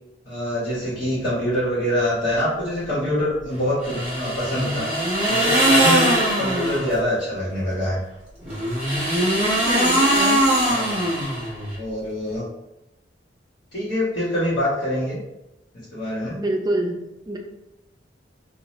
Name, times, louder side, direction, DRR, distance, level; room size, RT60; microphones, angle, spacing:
voice 1, 0.3-4.9 5.3-8.0 9.9-10.4 10.7-11.1 11.8-12.4 13.7-15.2 15.9-16.4, left 1 dB, 70° left, -12 dB, 1.2 m, -25 dB
sound 1, 3.8-7.0 8.4-11.8, right 1 dB, 5° right, 1.1 m, -21 dB
voice 2, 9.4-10.0 16.3-17.4, right 1 dB, 25° right, 1 dB, 0.4 m, -26 dB
2.7 x 2.3 x 3.1 m, 0.93 s
head